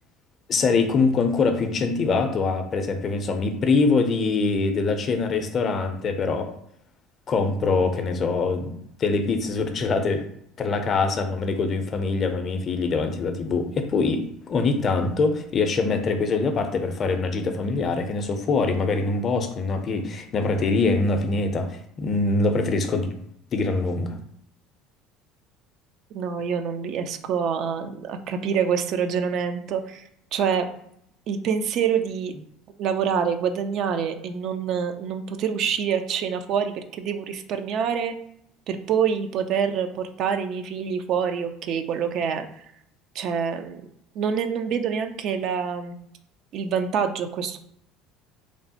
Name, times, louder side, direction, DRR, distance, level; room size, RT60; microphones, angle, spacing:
voice 1, 0.5-6.5 7.3-10.2 10.6-23.1 23.5-24.2, left 4 dB, 45° left, 7 dB, 0.5 m, -24 dB
voice 2, 26.1-30.0 30.3-30.7 31.3-32.3 32.8-38.2 38.7-42.5 43.1-43.8 44.2-46.0 46.5-47.6, right 7 dB, 60° right, 7 dB, 0.3 m, -26 dB
3.1 x 2.0 x 2.8 m, 0.72 s
hypercardioid pair, 75°, 0 cm